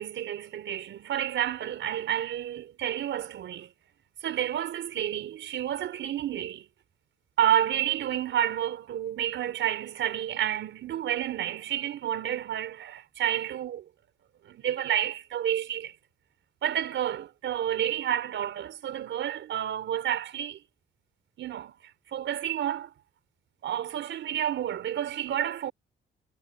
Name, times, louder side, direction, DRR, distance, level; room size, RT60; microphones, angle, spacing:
voice 1, 0.0-3.7 4.2-6.7 7.4-13.8 14.5-15.9 16.6-20.6 21.4-21.7 22.1-22.9 23.6-25.7, right 11 dB, 70° right, 4.2 m, -30 dB
cardioid pair, 90°, 20 cm